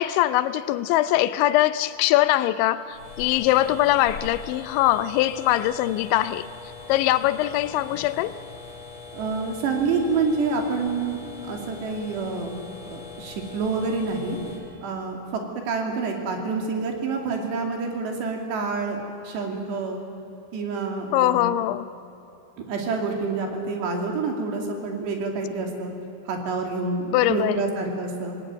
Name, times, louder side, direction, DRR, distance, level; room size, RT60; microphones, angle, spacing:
voice 1, 0.0-6.5 6.9-8.4 21.1-21.9 27.1-27.6, left 14 dB, 85° left, 13 dB, 3.1 m, -22 dB
sound 1, 2.9-14.6, left 4 dB, 50° left, 7.9 m, -41 dB
voice 2, 9.1-12.5 12.9-14.4 14.8-15.4 15.7-20.0 20.5-21.5 22.7-25.9 26.3-28.4, right 4 dB, 70° right, 2 dB, 4.8 m, -27 dB
26.5 x 19.5 x 9.4 m, 2.9 s
omnidirectional pair, 5.2 m